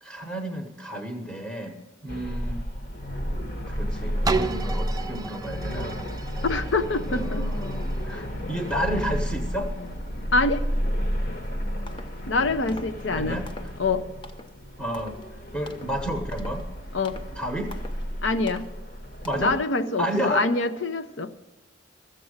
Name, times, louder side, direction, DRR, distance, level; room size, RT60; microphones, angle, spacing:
voice 1, 0.0-2.6 3.7-5.9 7.0-9.7 13.1-13.5 14.8-15.2 15.5-16.7 17.3-17.7 19.2-19.6 20.0-20.5, equal, 5° left, 2 dB, 1.0 m, -31 dB
sound 1, 2.1-19.6, equal, 50° left, 1.2 m, -32 dB
sound 2, 4.2-10.0 10.6-10.7, right 3 dB, 20° right, 0.4 m, -34 dB
voice 2, 6.4-7.5 8.1-8.3 10.3-10.6 12.3-13.4 13.8-14.0 16.9-17.2 18.2-18.6 19.4-21.3, left 3 dB, 70° left, 9 dB, 0.7 m, -25 dB
sound 3, 11.3-11.5 11.9-12.2 12.7-13.0 13.5-13.8 14.2-14.6 14.9-15.3 15.7-16.0 16.3-16.7 17.0-17.3 17.7-18.1 18.5-18.7 19.2-19.6, left 2 dB, 25° left, 0.6 m, -45 dB
13.5 x 7.7 x 6.4 m, 1.1 s
head